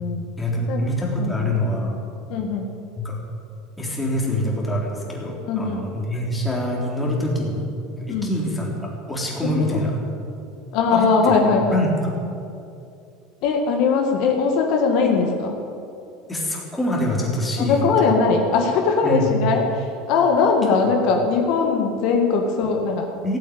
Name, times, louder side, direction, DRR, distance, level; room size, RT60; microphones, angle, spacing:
voice 1, 0.4-1.9 2.9-3.2 3.8-7.7 8.0-10.0 10.9-11.3 11.7-11.9 16.3-18.1 19.0-19.3 23.2-23.4, left 1 dB, 5° left, -3 dB, 3.5 m, -25 dB
voice 2, 1.2-1.5 2.3-2.7 5.5-5.8 8.1-8.3 10.7-11.8 13.4-15.6 17.6-23.1, left 4 dB, 55° left, 2 dB, 1.7 m, -20 dB
16.5 x 9.1 x 9.3 m, 2.7 s
supercardioid pair, 145°, 0 cm